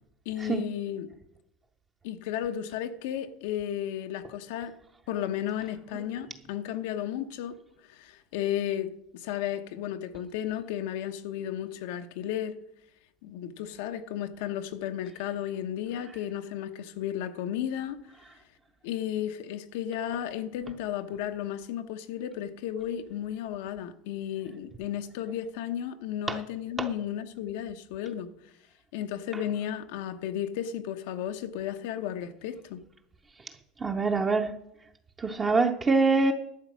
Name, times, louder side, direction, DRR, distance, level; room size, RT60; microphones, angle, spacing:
voice 1, 0.2-1.1 2.0-4.7 5.1-7.5 7.9-12.6 13.2-18.0 18.8-28.3 28.9-32.8, left 10 dB, 85° left, 0.9 m, -34 dB
voice 2, 33.8-34.5 35.2-36.3, right 3 dB, 20° right, 0.6 m, -24 dB
12.0 x 7.1 x 6.1 m
cardioid pair, 150°, 0 cm